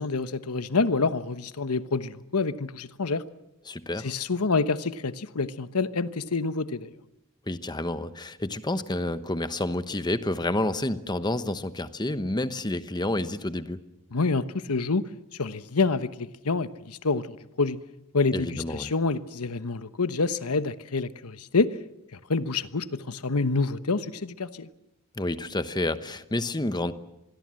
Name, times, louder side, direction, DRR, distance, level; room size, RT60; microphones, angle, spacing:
voice 1, 0.0-3.2 4.0-6.9 14.1-15.0 15.4-17.8 18.1-21.7 22.1-24.7, left 4 dB, 75° left, 13 dB, 1.1 m, -27 dB
voice 2, 3.7-4.1 7.5-13.8 18.3-18.9 25.2-26.9, left 1 dB, 20° left, 12 dB, 1.0 m, -29 dB
26.0 x 21.0 x 7.7 m, 0.89 s
head